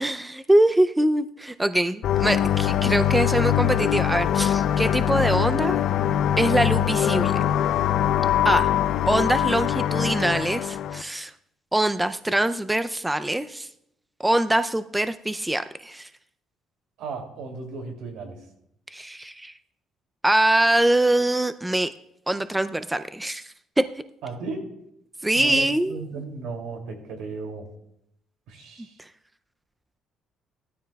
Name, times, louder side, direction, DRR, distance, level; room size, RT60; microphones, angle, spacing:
voice 1, 0.0-5.8 6.4-7.4 8.4-8.7 9.1-11.3 11.7-13.7 14.2-16.1 18.9-19.5 20.2-21.9 22.3-23.8 25.2-26.1, right 1 dB, 10° right, 11 dB, 0.4 m, -23 dB
sound 1, 2.0-11.0, left 10 dB, 65° left, 0.4 m, -23 dB
voice 2, 17.0-18.4 24.2-24.7 25.3-27.7 28.5-28.9, right 3 dB, 85° right, 3 dB, 2.5 m, -35 dB
18.0 x 12.5 x 2.3 m, 0.79 s
cardioid pair, 120°, 0 cm